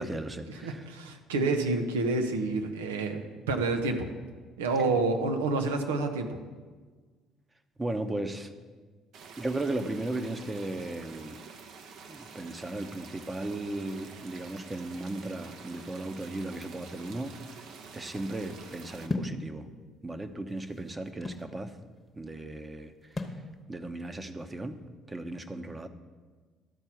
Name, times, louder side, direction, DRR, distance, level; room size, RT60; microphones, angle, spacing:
voice 1, 0.0-0.9 7.8-8.5 9.4-11.4 12.1-19.7 20.0-21.8 22.1-23.4 23.7-24.8 25.1-25.9, right 2 dB, 20° right, 8 dB, 0.9 m, -36 dB
voice 2, 0.6-4.1 4.6-6.4, right 3 dB, 90° right, 5 dB, 0.8 m, -28 dB
sound 1, 9.1-19.1, right 5 dB, 65° right, 0.9 m, -48 dB
sound 2, 19.1-19.4 20.3-21.5 23.2-23.4, left 2 dB, 25° left, 1.1 m, -34 dB
12.5 x 4.5 x 5.9 m, 1.4 s
hypercardioid pair, 65°, 0 cm